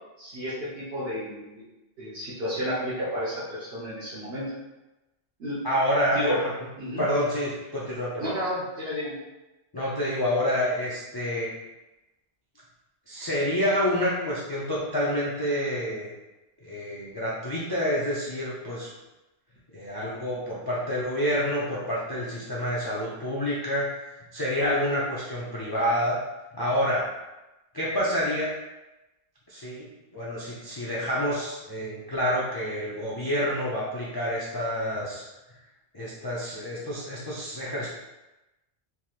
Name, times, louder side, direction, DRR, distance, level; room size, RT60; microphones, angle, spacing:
voice 1, 0.2-1.6 2.0-4.5 5.4-5.6 6.1-6.4 6.8-7.0 8.2-9.2, equal, 70° right, -10 dB, 1.1 m, -31 dB
voice 2, 5.6-6.5 7.0-8.3 9.7-11.5 13.1-16.1 16.6-18.9 19.7-26.2 26.5-27.1 27.7-28.5 29.5-29.9 30.1-35.2 35.9-37.9, equal, 35° left, -7 dB, 0.4 m, -28 dB
3.4 x 2.9 x 2.4 m, 1.0 s
omnidirectional pair, 1.1 m